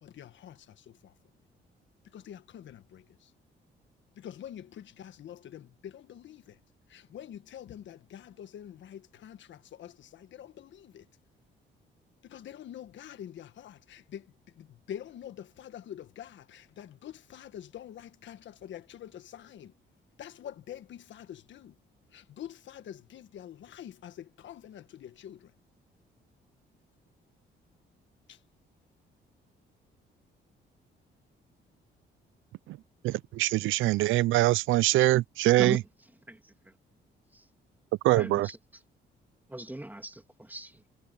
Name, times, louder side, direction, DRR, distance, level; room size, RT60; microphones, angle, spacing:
voice 1, 0.0-1.2 2.0-3.3 4.1-6.6 6.9-11.1 12.2-19.7 20.2-21.8 22.1-25.5 28.3-28.4, left 10 dB, 70° left, 1.5 m, -46 dB
voice 2, 33.0-35.8 38.0-38.5, right 17 dB, 85° right, 0.5 m, -23 dB
voice 3, 36.3-36.7 37.3-37.5 38.1-38.8 39.5-40.8, right 1 dB, 10° right, 2.8 m, -40 dB
cardioid pair, 90°, 20 cm